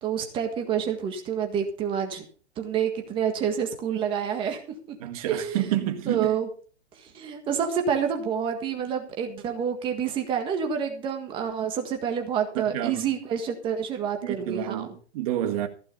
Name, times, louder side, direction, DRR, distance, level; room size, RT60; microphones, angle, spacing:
voice 1, 0.0-2.3 2.6-4.6 4.9-5.0 5.3-5.7 6.0-6.5 6.9-14.9, right 7 dB, 15° right, 1.6 m, -28 dB
voice 2, 5.0-6.3 12.6-13.0 14.2-15.7, right 12 dB, 30° right, 1.8 m, -29 dB
15.5 x 6.1 x 7.1 m
hypercardioid pair, 170°, 35 cm